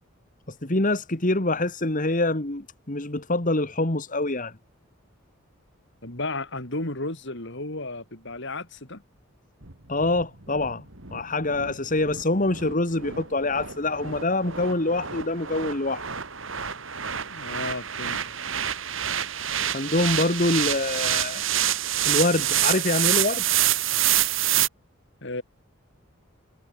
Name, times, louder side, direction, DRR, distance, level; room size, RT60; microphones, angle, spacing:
voice 1, 0.5-4.6 9.9-10.9 11.1-16.0 19.7-21.4 22.1-23.4, left 2 dB, 40° left, 1.9 m, -25 dB
voice 2, 6.0-9.0 17.3-18.2 25.2-25.4, left 2 dB, 55° left, 3.5 m, -33 dB
sound 1, 9.6-24.7, right 11 dB, 65° right, 3.0 m, -27 dB
head